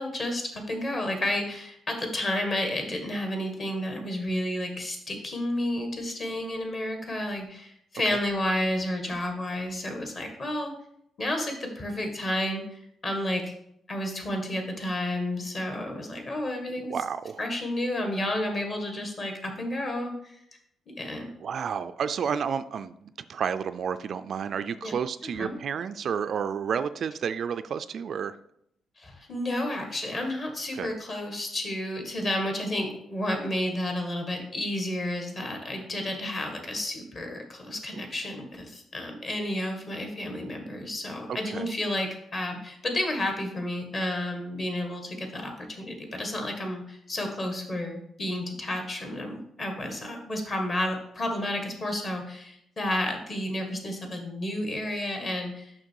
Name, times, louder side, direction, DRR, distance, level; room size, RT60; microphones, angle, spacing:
voice 1, 0.0-10.7 11.2-13.5 13.9-16.9 17.4-20.4 20.9-21.3 24.8-24.9 25.4-25.6 29.0-55.7, left 1 dB, 35° left, 3 dB, 1.6 m, -31 dB
voice 2, 16.9-17.4 21.4-28.4 30.7-30.9 41.3-41.7, right 7 dB, 50° right, 11 dB, 0.3 m, -31 dB
6.5 x 5.8 x 4.6 m, 0.75 s
cardioid pair, 135°, 0 cm